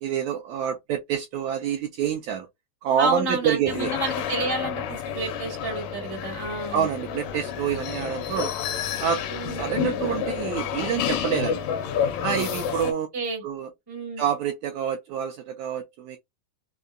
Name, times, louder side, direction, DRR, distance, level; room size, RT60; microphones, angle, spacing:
voice 1, 0.0-2.5 2.8-3.9 6.7-8.5 9.0-9.2 9.6-11.7 12.2-13.1 13.4-13.7 14.2-16.2, right 8 dB, 80° right, 1.7 m, -27 dB
voice 2, 3.0-6.9 9.3-9.7 12.8-13.4 13.9-14.2, right 3 dB, 10° right, 1.1 m, -30 dB
sound 1, 3.7-12.9, left 8 dB, 90° left, 2.3 m, -30 dB
5.3 x 2.2 x 2.4 m
omnidirectional pair, 3.7 m